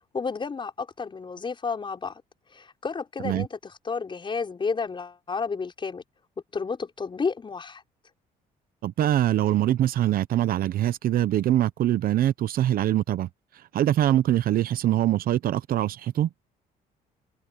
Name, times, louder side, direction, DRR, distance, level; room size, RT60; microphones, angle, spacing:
voice 1, 0.1-2.2 2.5-6.0 6.5-7.8, left 5 dB, 30° left, 6.0 m, -31 dB
voice 2, 8.8-13.3 13.7-16.3, right 12 dB, 60° right, 0.9 m, -23 dB
cardioid pair, 110°, 17 cm